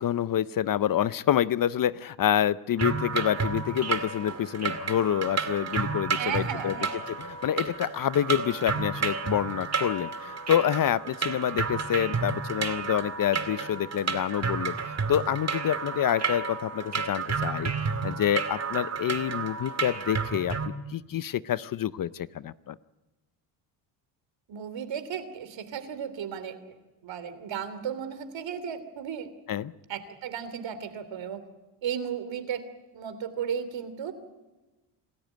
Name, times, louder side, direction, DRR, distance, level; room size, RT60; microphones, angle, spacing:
voice 1, 0.0-6.8 7.1-20.6 20.9-22.8 29.5-29.7, left 10 dB, 40° left, 17 dB, 0.7 m, -27 dB
sound 1, 2.8-20.7, right 5 dB, 30° right, 2.2 m, -31 dB
voice 2, 6.1-7.0 24.5-26.7 27.0-29.3 29.9-31.4 31.8-32.6 32.9-34.1, right 8 dB, 60° right, 12 dB, 3.2 m, -34 dB
27.0 x 14.0 x 9.1 m, 1.1 s
cardioid pair, 90°, 50 cm